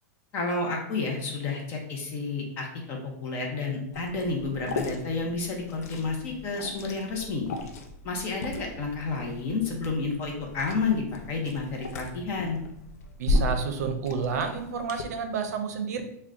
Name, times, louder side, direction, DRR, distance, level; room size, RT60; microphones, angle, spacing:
voice 1, 0.3-7.5 8.0-12.6, left 3 dB, 25° left, 1 dB, 0.6 m, -30 dB
Liquid, 3.9-15.0, left 2 dB, 65° left, 0.5 m, -35 dB
voice 2, 13.2-16.0, right 5 dB, 75° right, 7 dB, 0.5 m, -30 dB
3.6 x 2.2 x 3.6 m, 0.76 s
supercardioid pair, 175°, 9 cm